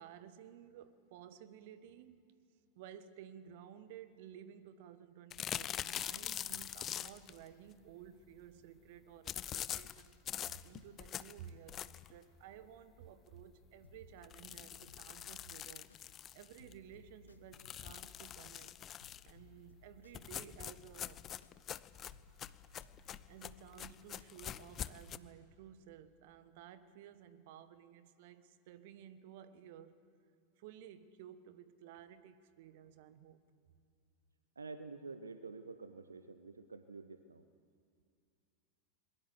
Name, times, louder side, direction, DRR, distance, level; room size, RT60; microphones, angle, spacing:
voice 1, 0.0-2.3 2.7-15.9 16.3-18.7 19.2-21.2 23.3-30.0 30.6-33.4, right 9 dB, 50° right, 1.3 m, -55 dB
sound 1, 5.3-7.4 9.3-12.2 12.6-12.7 13.1-13.2 13.4-13.5 14.2-16.7 17.5-19.3 20.1-25.2, left 10 dB, 30° left, 0.7 m, -44 dB
sound 2, 13.8-16.3 16.6-21.8 22.1-24.9, left 5 dB, 75° left, 1.6 m, -63 dB
voice 2, 34.6-37.4, right 4 dB, 75° right, 0.9 m, -49 dB
22.0 x 21.5 x 8.2 m
figure-of-eight pair, 90°, 0 cm